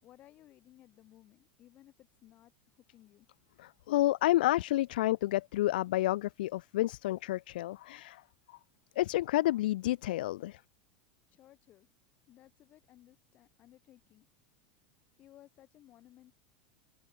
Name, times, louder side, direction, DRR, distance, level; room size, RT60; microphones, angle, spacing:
voice 1, 0.0-3.3 11.3-11.9 12.3-14.3 15.2-16.3, left 14 dB, 30° left, 3.7 m, -59 dB
voice 2, 3.6-8.2 8.5-8.6 9.0-10.6, left 16 dB, 85° left, 0.7 m, -30 dB
open air
supercardioid pair, 165°, 5 cm